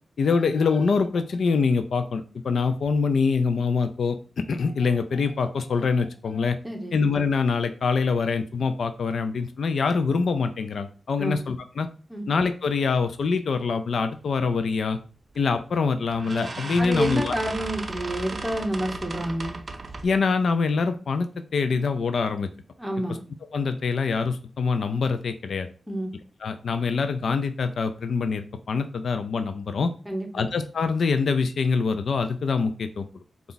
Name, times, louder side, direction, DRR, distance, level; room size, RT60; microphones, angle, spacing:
voice 1, 0.2-6.6 6.9-11.9 12.3-15.0 15.4-17.4 20.0-22.5 23.5-25.7 26.4-29.9 30.3-33.1, left 5 dB, 80° left, 9 dB, 0.4 m, -24 dB
voice 2, 6.6-7.0 11.2-11.4 12.1-12.2 16.8-19.6 22.8-23.2 25.9-26.1 30.1-30.5, equal, 5° right, 2 dB, 0.8 m, -29 dB
sound 1, 15.4-15.6 16.1-20.2, right 2 dB, 40° right, 0.4 m, -35 dB
4.0 x 2.3 x 3.9 m, 0.37 s
wide cardioid pair, 110°, 0 cm